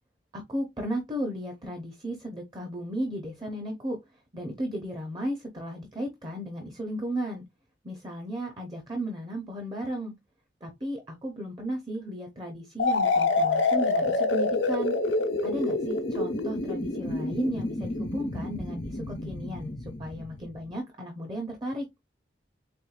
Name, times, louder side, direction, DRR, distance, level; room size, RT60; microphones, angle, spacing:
voice 1, 0.3-7.4 7.8-10.1 10.6-14.9 15.4-21.9, right 1 dB, 25° right, 0.7 m, -34 dB
sound 1, 12.8-20.5, left 3 dB, 90° left, 1.0 m, -27 dB
4.3 x 3.4 x 2.4 m
head